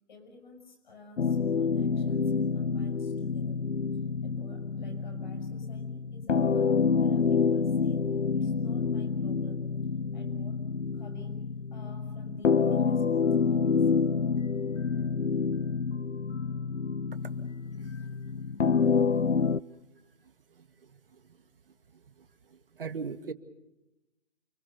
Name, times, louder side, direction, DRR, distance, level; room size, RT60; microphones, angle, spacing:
voice 1, 0.1-3.6 4.2-8.1 8.3-9.7 10.1-10.7 10.9-11.4 11.7-13.9, right 1 dB, 40° left, 4 dB, 6.6 m, -50 dB
sound 1, 1.2-19.6, left 5 dB, 85° left, 0.8 m, -28 dB
voice 2, 22.5-23.3, right 5 dB, 50° right, 10 dB, 2.1 m, -39 dB
29.0 x 21.0 x 6.9 m, 0.95 s
figure-of-eight pair, 160°, 35 cm